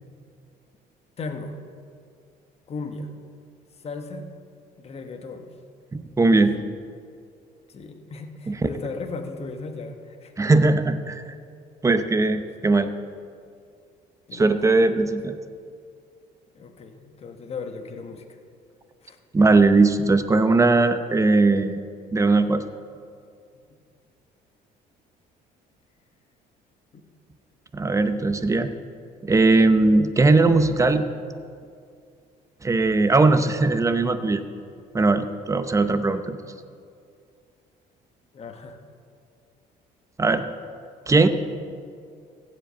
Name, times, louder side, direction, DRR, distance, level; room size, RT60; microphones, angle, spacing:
voice 1, 1.2-1.5 2.7-3.1 3.8-4.2 4.8-5.6 7.7-10.3 14.3-14.9 16.5-18.2 19.0-19.2 26.9-27.0 38.3-38.8, left 4 dB, 35° left, 5 dB, 1.1 m, -36 dB
voice 2, 5.9-6.6 8.5-8.7 10.4-11.2 11.8-12.9 14.3-15.4 19.3-21.8 22.1-22.6 27.7-28.7 29.2-31.1 32.6-34.4 34.9-36.4 40.2-40.5 41.1-41.3, right 3 dB, 20° right, 10 dB, 0.7 m, -19 dB
15.5 x 5.2 x 7.9 m, 2.3 s
cardioid pair, 110°, 17 cm